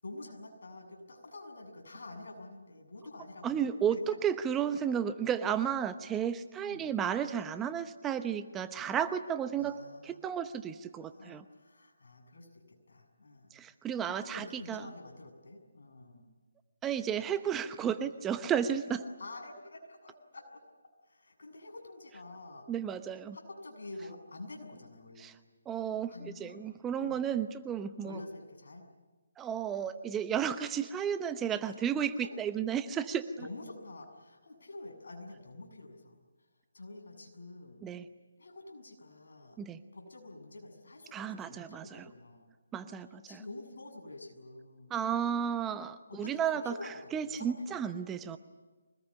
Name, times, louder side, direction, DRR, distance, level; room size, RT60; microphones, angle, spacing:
voice 1, 0.0-4.0 6.6-6.9 9.5-10.2 11.0-13.5 14.0-16.3 17.8-17.9 18.6-18.7 19.2-20.6 21.0-22.7 23.3-25.4 26.1-26.6 27.0-27.2 28.0-28.9 32.2-32.3 33.4-36.5 36.7-37.9 38.4-39.6 39.9-42.5 43.3-45.0 46.1-47.8, left 2 dB, 70° left, 3 dB, 7.3 m, -48 dB
voice 2, 3.4-9.8 10.0-11.4 13.5-14.8 16.8-18.9 22.7-23.4 25.2-25.3 25.7-28.2 29.4-33.2 37.8-38.0 39.6-39.8 41.1-42.1 42.7-43.4 44.9-46.7 47.1-48.4, right 8 dB, 10° right, 11 dB, 0.8 m, -33 dB
25.0 x 20.0 x 9.9 m, 1.3 s
figure-of-eight pair, 155°, 0 cm